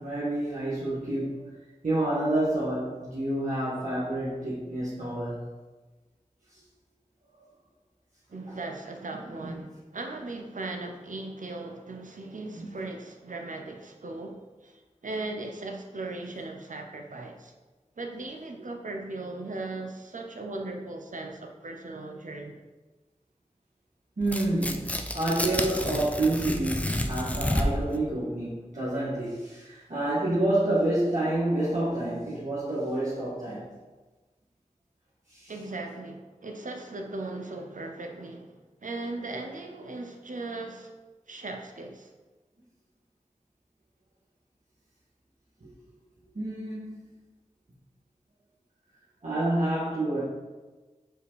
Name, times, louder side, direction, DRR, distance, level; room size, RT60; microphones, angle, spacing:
voice 1, 0.0-1.6 1.8-5.4 8.5-8.6 9.4-9.5 12.5-12.7 24.2-33.7 35.3-35.5 45.6-45.7 46.3-47.0 49.2-50.2, right 1 dB, 75° right, -10 dB, 1.8 m, -28 dB
voice 2, 8.3-17.5 18.0-22.6 35.5-38.5 38.8-40.9 41.3-42.1, right 2 dB, 90° right, 3 dB, 0.7 m, -38 dB
Tearing, 24.2-27.9, left 1 dB, 10° left, 0.6 m, -30 dB
5.0 x 5.0 x 4.8 m, 1.2 s
wide cardioid pair, 50°, 13 cm